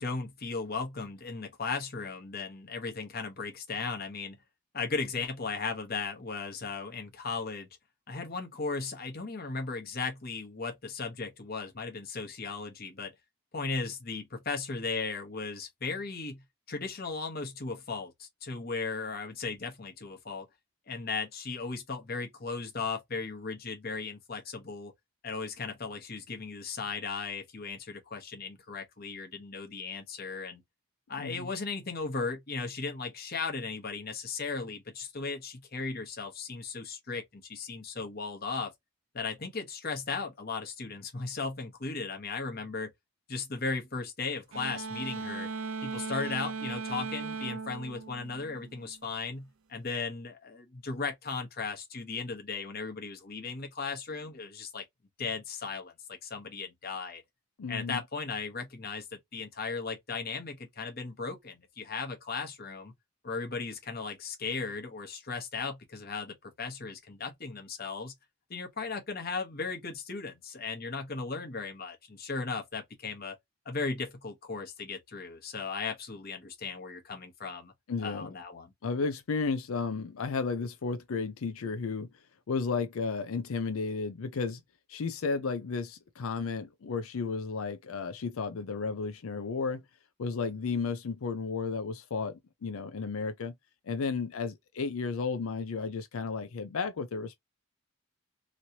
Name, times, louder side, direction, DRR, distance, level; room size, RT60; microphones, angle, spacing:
voice 1, 0.0-4.4 4.7-7.7 8.1-13.1 13.5-20.5 20.9-24.9 25.2-30.6 31.1-38.7 39.1-42.9 43.3-45.5 45.8-54.8 55.2-57.2 57.7-62.9 63.2-68.1 68.5-73.4 73.6-77.7 78.0-78.7, left 4 dB, 40° left, 1.0 m, -36 dB
voice 2, 31.2-31.5 57.6-58.0 77.9-78.3 78.8-82.1 82.5-84.6 84.9-89.8 90.2-93.5 93.9-97.4, left 4 dB, 70° left, 0.5 m, -33 dB
sound 1, 44.5-49.0, right 5 dB, 65° right, 0.6 m, -38 dB
3.1 x 2.7 x 2.7 m
head